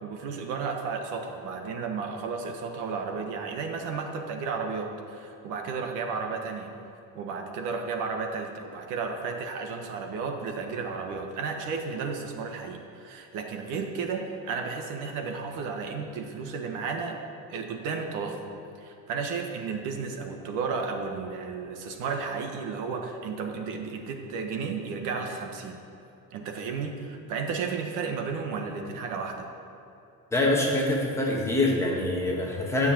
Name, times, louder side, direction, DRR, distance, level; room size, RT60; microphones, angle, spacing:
voice 1, 0.0-6.7 7.1-17.2 17.5-18.4 18.8-25.8 26.3-29.5, right 5 dB, 55° right, 4 dB, 1.5 m, -33 dB
voice 2, 30.3-32.9, left 2 dB, 5° left, -3 dB, 1.6 m, -25 dB
13.0 x 7.1 x 8.7 m, 2.8 s
cardioid pair, 175°, 36 cm